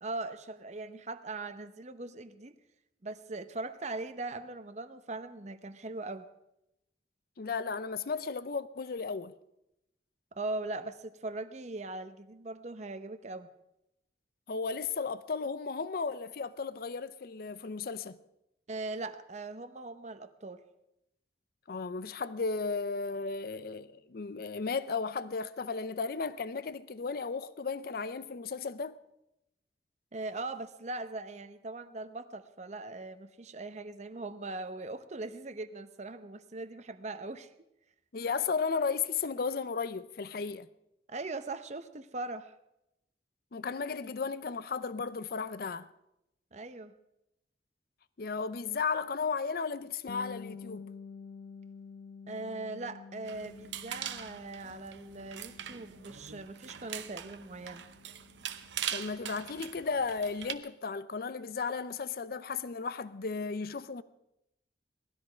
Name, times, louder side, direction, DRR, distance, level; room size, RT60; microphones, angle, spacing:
voice 1, 0.0-2.5 3.0-6.3 10.3-13.5 18.7-20.6 30.1-37.5 41.1-42.5 46.5-46.9 52.3-57.8, right 2 dB, 40° right, 0.8 m, -40 dB
voice 2, 7.4-9.3 14.5-18.2 21.7-29.0 38.1-40.7 43.5-45.9 48.2-50.8 58.9-64.0, left 5 dB, 55° left, 0.5 m, -34 dB
Bass guitar, 50.1-59.7, left 5 dB, 75° left, 1.1 m, -50 dB
sound 1, 53.2-60.5, right 10 dB, 90° right, 0.8 m, -42 dB
18.5 x 13.0 x 5.0 m
head